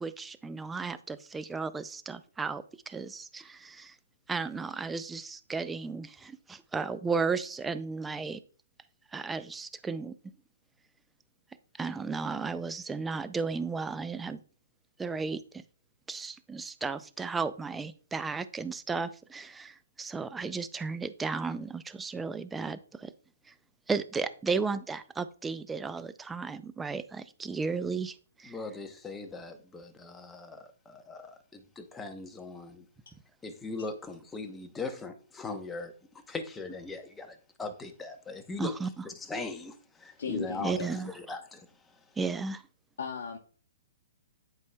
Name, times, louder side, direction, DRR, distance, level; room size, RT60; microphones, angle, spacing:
voice 1, 0.0-3.9 4.3-8.4 9.1-10.1 11.8-14.4 15.0-15.4 16.1-23.1 23.9-28.5 38.6-38.9 40.6-41.1 42.2-42.6, right 4 dB, 10° right, 0.4 m, -34 dB
voice 2, 28.4-32.8 33.4-38.7 39.0-42.0, left 3 dB, 10° left, 0.8 m, -40 dB
voice 3, 40.2-41.1 43.0-43.4, left 5 dB, 70° left, 1.0 m, -37 dB
10.5 x 4.7 x 2.2 m
hypercardioid pair, 135°, 0 cm